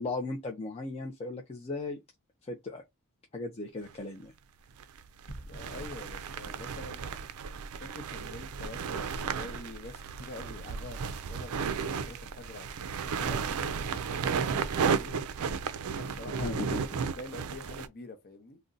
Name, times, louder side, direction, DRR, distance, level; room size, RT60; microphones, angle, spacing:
voice 1, 0.0-2.0 2.4-2.8 3.3-4.3 16.4-16.8, left 2 dB, 30° left, 0.4 m, -36 dB
sound 1, 3.9-4.0 4.8-17.9, right 6 dB, 70° right, 0.4 m, -34 dB
sound 2, 5.3-7.4, right 1 dB, 75° left, 0.8 m, -47 dB
voice 2, 5.5-7.0 7.8-15.5 16.0-18.6, left 2 dB, 45° left, 0.8 m, -46 dB
2.6 x 2.1 x 3.7 m
head